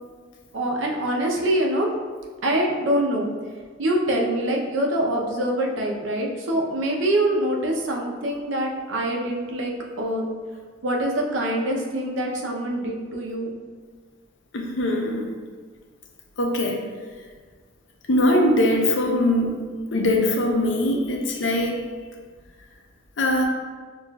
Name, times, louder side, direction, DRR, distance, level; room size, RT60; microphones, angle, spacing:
voice 1, 0.5-1.9 2.4-3.3 3.8-10.3 10.8-13.5, right 1 dB, 80° right, 0 dB, 0.6 m, -24 dB
voice 2, 14.5-15.3 16.4-16.8 18.1-19.6 19.9-21.8 23.2-23.4, left 1 dB, 70° left, 1 dB, 0.6 m, -21 dB
6.5 x 2.4 x 2.3 m, 1.6 s
head